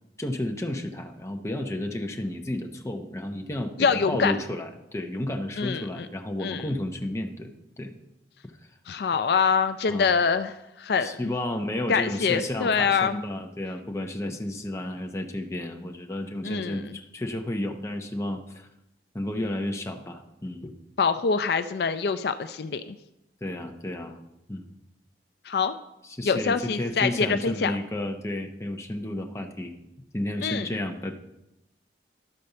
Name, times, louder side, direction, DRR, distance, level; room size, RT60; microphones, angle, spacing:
voice 1, 0.2-7.9 9.9-10.1 11.0-18.7 19.1-20.7 23.4-24.2 24.5-24.7 26.1-29.7 30.1-31.1, left 1 dB, 15° left, 3 dB, 0.8 m, -32 dB
voice 2, 3.8-4.3 5.6-6.1 6.4-6.7 8.9-11.2 11.9-13.2 16.4-17.0 21.0-23.0 25.5-25.7 26.3-27.7 30.4-30.7, left 5 dB, 60° left, 10 dB, 0.4 m, -25 dB
12.0 x 4.2 x 6.7 m, 0.89 s
head